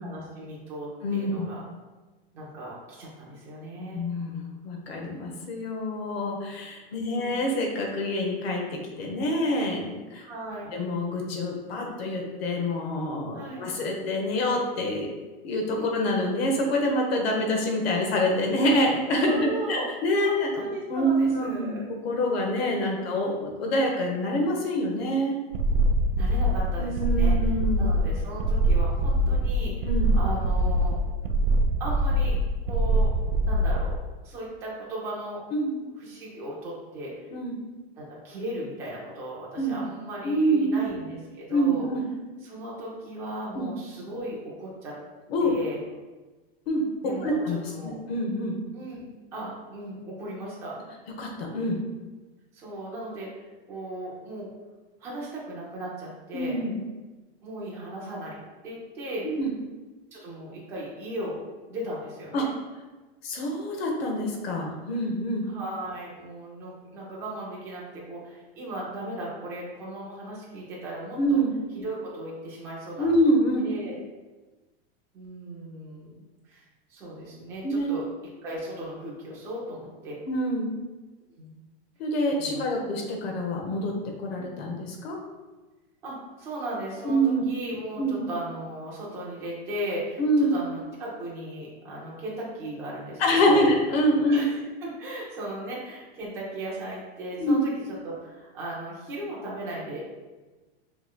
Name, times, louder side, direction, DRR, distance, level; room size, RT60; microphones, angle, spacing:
voice 1, 0.0-1.6 2.3-4.0 6.9-7.5 10.2-10.7 13.3-13.6 15.8-16.0 19.3-19.9 20.2-21.8 26.2-27.4 27.8-31.0 31.8-32.4 32.6-33.1 33.4-34.0 34.2-35.4 36.0-37.3 38.0-41.9 42.4-45.0 45.4-45.8 47.0-48.0 48.7-49.1 49.3-50.8 52.5-54.5 55.0-56.6 57.4-59.3 60.1-61.4 61.7-62.5 65.5-71.4 71.7-73.1 73.6-73.9 75.1-76.6 76.9-78.1 78.4-80.2 81.3-81.6 82.4-82.6 84.4-84.5 86.0-93.7 94.3-100.0, right 1 dB, 10° right, -5 dB, 0.4 m, -37 dB
voice 2, 1.0-1.5 3.8-8.6 9.0-10.3 10.7-15.1 15.4-20.5 20.9-21.8 22.0-25.4 26.8-27.9 29.8-30.1 35.5-35.8 37.3-37.5 39.6-39.8 40.2-40.8 41.5-42.0 43.5-43.7 45.3-45.5 46.7-46.8 47.2-47.6 47.8-48.6 51.2-51.8 56.3-56.8 59.4-59.5 62.3-62.4 63.2-65.5 71.2-71.5 73.0-73.7 77.6-77.9 80.3-80.7 82.0-83.9 84.2-85.2 87.0-87.4 88.0-88.1 90.2-90.6 93.2-94.4 97.4-97.6, equal, 80° left, 0 dB, 1.0 m, -26 dB
sound 1, 25.5-34.0, right 1 dB, 75° right, 0.5 m, -23 dB
5.9 x 3.0 x 2.2 m, 1.2 s
supercardioid pair, 175°, 30 cm